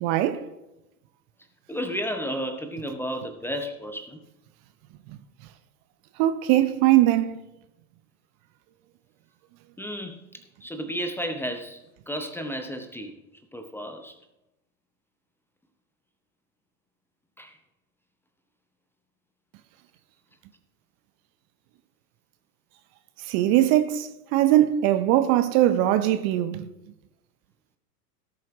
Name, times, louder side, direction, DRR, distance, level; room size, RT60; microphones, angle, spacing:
voice 1, 0.0-0.4 6.2-7.4 23.3-26.7, right 13 dB, 35° right, 0.7 m, -21 dB
voice 2, 1.7-4.2 9.8-11.8 12.1-13.1 13.5-14.1 17.4-17.6, equal, 5° left, 0.7 m, -33 dB
17.5 x 7.4 x 3.1 m
figure-of-eight pair, 95°, 48 cm